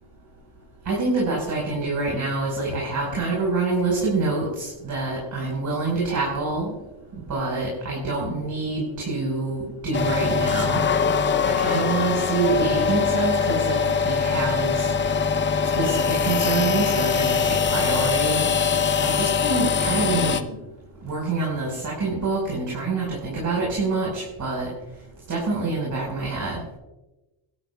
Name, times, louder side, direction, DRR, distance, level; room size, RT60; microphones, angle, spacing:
voice 1, 0.8-6.7 7.3-10.8 11.4-13.8 14.0-14.9 15.7-18.4 19.0-20.4 21.0-24.7 25.3-26.6, right 3 dB, 40° right, -3 dB, 4.8 m, -26 dB
sound 1, 9.9-20.4, left 6 dB, 25° left, 0.6 m, -22 dB
21.5 x 12.0 x 2.3 m, 1.0 s
cardioid pair, 130°, 45 cm